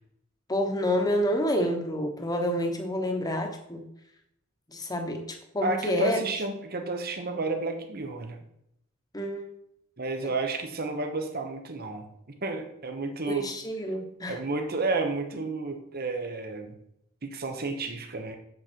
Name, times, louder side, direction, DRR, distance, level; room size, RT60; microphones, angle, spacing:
voice 1, 0.5-3.8 4.7-6.2 9.1-9.5 10.2-10.3 13.2-14.4, equal, 20° left, 4 dB, 1.3 m, -28 dB
voice 2, 5.6-8.4 10.0-12.0 12.4-13.4 14.3-16.8 17.2-18.4, right 3 dB, 50° right, 5 dB, 1.2 m, -31 dB
7.7 x 7.3 x 4.6 m, 0.77 s
head